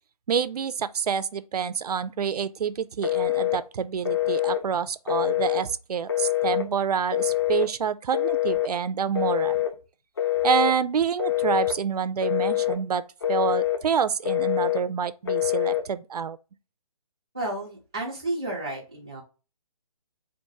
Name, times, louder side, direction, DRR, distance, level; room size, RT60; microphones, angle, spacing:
voice 1, 0.3-9.6 10.4-16.4, right 7 dB, 85° right, 0.4 m, -27 dB
Telephone, 3.0-3.6 4.1-4.6 5.1-5.6 6.1-6.7 7.1-7.7 8.1-8.7 9.2-9.7 10.2-10.7 11.2-11.8 12.2-12.8 13.2-13.8 14.3-14.8 15.3-15.8, left 13 dB, 40° left, 0.6 m, -25 dB
voice 2, 17.3-19.2, right 1 dB, 10° right, 0.3 m, -32 dB
4.6 x 2.5 x 2.7 m
hypercardioid pair, 175°, 19 cm